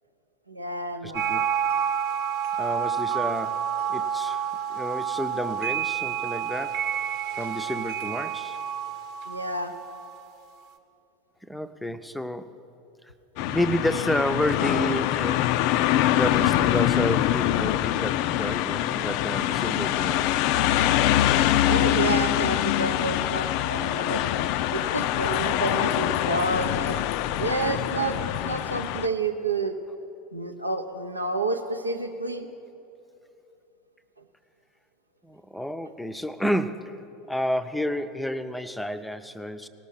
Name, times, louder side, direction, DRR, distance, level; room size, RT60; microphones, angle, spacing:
voice 1, 0.5-1.5 9.3-9.7 21.7-24.5 24.7-27.0 27.4-28.2 28.4-29.8 30.3-32.5, right 3 dB, 90° right, 6 dB, 0.6 m, -29 dB
voice 2, 1.0-1.4 2.6-3.6 3.9-6.8 7.3-8.6 11.4-12.5 13.5-15.5 15.9-20.5 35.2-39.7, left 1 dB, 5° left, 10 dB, 0.5 m, -30 dB
sound 1, 1.1-10.4, right 8 dB, 55° right, 0.9 m, -29 dB
sound 2, 13.4-29.1, left 13 dB, 55° left, 0.3 m, -24 dB
18.5 x 6.2 x 5.7 m, 2.8 s
figure-of-eight pair, 80°, 0 cm